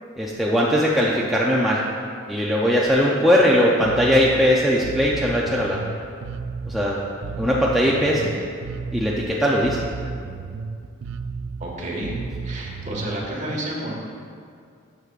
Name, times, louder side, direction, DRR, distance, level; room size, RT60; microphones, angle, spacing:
voice 1, 0.2-1.8 2.3-5.8 6.7-7.0 7.4-8.3 8.9-9.8, equal, ahead, -5 dB, 0.5 m, -19 dB
Bass guitar, 3.8-13.3, right 4 dB, 75° right, 0.4 m, -33 dB
voice 2, 11.6-12.2 12.4-13.9, right 1 dB, 35° right, -3 dB, 1.5 m, -30 dB
12.5 x 6.7 x 2.4 m, 2.3 s
head